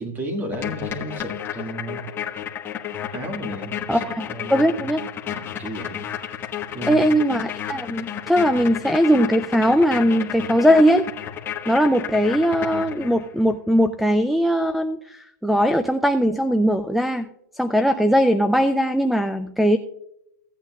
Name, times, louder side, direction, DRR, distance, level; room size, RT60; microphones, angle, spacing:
voice 1, 0.0-2.0 3.1-4.9 5.3-6.1 6.7-7.1, right 1 dB, 20° right, 3 dB, 1.9 m, -33 dB
sound 1, 0.5-13.3, left 9 dB, 20° left, 1.2 m, -32 dB
voice 2, 3.9-5.0 6.9-11.0 11.7-17.3 17.5-19.8, equal, ahead, 6 dB, 0.3 m, -20 dB
16.5 x 8.6 x 2.4 m, 0.80 s
hypercardioid pair, 135°, 10 cm